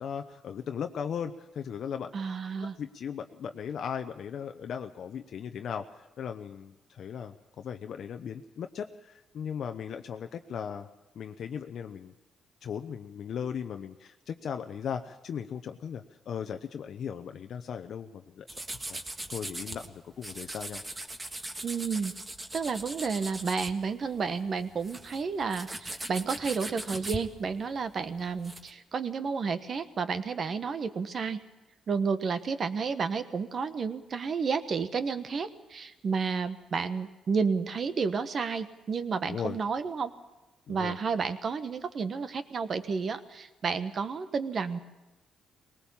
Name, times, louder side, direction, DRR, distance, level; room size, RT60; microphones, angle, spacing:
voice 1, 0.0-2.1 2.6-10.9 11.2-12.1 12.6-18.5 19.3-20.8 39.3-39.6 40.7-41.0, left 7 dB, 65° left, 6 dB, 0.8 m, -37 dB
voice 2, 2.1-2.8 21.6-22.1 22.5-31.4 31.9-40.1 40.7-44.8, right 5 dB, 50° right, 11 dB, 1.3 m, -31 dB
sound 1, 18.5-19.9 20.2-24.2 24.5-28.7, right 1 dB, 20° right, 1.6 m, -40 dB
19.5 x 19.0 x 7.2 m, 1.1 s
cardioid pair, 90°, 0 cm